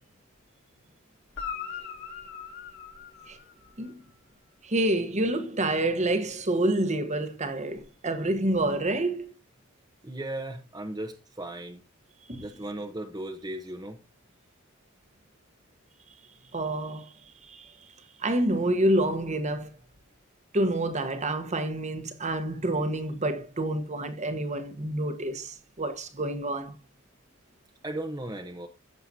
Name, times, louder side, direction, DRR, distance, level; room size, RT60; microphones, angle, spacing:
Guitar, 1.3-3.9 7.7-7.8, left 6 dB, 60° left, 4.7 m, -40 dB
voice 1, 4.6-9.2 12.3-12.4 16.5-17.1 17.5-17.7 18.2-19.7 20.5-26.7, right 1 dB, 35° right, 1.2 m, -28 dB
voice 2, 10.0-11.8 12.4-14.0 27.8-28.7, right 1 dB, 20° right, 1.0 m, -36 dB
15.5 x 6.8 x 2.8 m
head